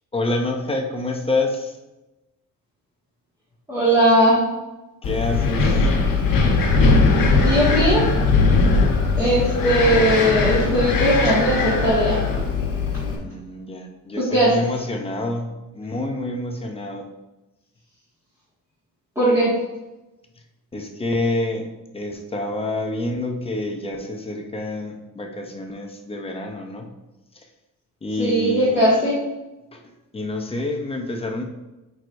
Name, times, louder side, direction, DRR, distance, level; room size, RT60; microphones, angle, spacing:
voice 1, 0.1-1.7 5.0-5.8 13.2-17.1 20.7-21.7 21.9-26.9 28.0-28.8 29.7-29.8 30.1-31.4, left 2 dB, 15° left, 3 dB, 0.7 m, -27 dB
voice 2, 3.7-4.4 7.4-8.1 9.2-12.2 14.2-14.5 19.2-19.5 28.2-29.2, right 1 dB, 10° right, -11 dB, 1.9 m, -18 dB
Wind, 5.0-13.2, left 3 dB, 90° left, 1.4 m, -19 dB
8.8 x 4.8 x 2.6 m, 1.0 s
cardioid pair, 160°, 33 cm